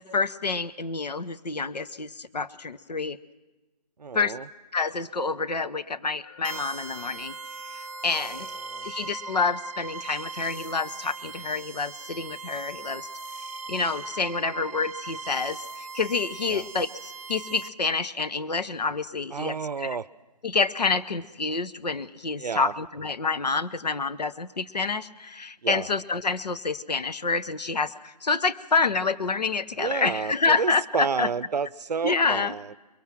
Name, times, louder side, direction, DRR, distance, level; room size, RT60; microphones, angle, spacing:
voice 1, 0.0-3.2 4.1-4.4 4.7-7.4 7.7-8.5 8.8-13.1 13.7-20.0 20.4-31.3 32.0-32.5, left 4 dB, 80° left, 0.9 m, -28 dB
voice 2, 4.0-4.4 8.1-8.3 8.7-8.9 16.5-16.6 19.3-20.1 22.4-22.7 25.6-25.9 29.8-32.8, right 5 dB, 80° right, 0.6 m, -30 dB
sound 1, 6.2-19.1, equal, 30° right, 1.7 m, -55 dB
sound 2, 6.4-17.7, right 4 dB, 55° right, 0.9 m, -39 dB
22.5 x 22.5 x 6.0 m
figure-of-eight pair, 150°, 21 cm